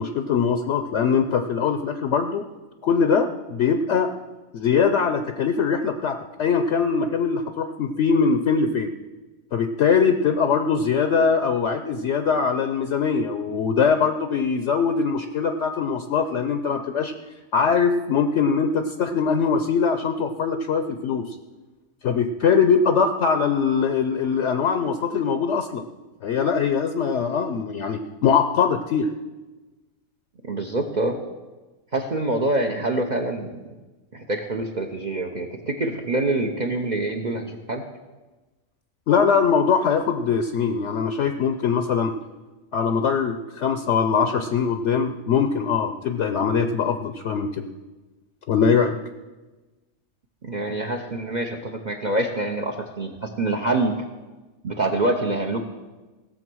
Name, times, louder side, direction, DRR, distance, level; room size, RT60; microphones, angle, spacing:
voice 1, 0.0-2.4 2.8-4.2 4.5-8.9 9.5-17.1 17.5-21.4 22.0-25.8 26.2-29.1 39.1-42.1 42.7-47.6 48.5-49.0, left 6 dB, 65° left, 8 dB, 0.9 m, -22 dB
voice 2, 30.4-31.2 31.9-33.5 34.1-37.8 50.4-53.9 54.6-55.6, right 2 dB, 40° right, 5 dB, 0.8 m, -25 dB
17.0 x 6.8 x 6.2 m, 1.2 s
omnidirectional pair, 1.4 m